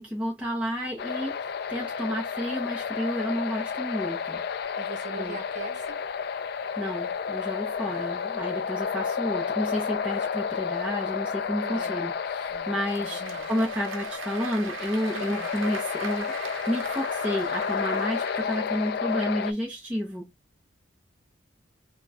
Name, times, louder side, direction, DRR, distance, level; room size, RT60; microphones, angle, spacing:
voice 1, 0.0-1.4 1.7-4.4 5.2-5.4 6.8-16.3 16.7-20.3, equal, 5° right, 0.8 m, -31 dB
sound 1, 1.0-19.5, left 6 dB, 50° left, 0.3 m, -31 dB
voice 2, 4.8-6.0 7.8-8.1 11.6-12.1 12.5-13.5 15.1-15.5, right 4 dB, 40° right, 1.2 m, -41 dB
Applause / Crowd, 12.5-19.3, right 5 dB, 90° right, 0.7 m, -40 dB
3.0 x 2.3 x 3.9 m
head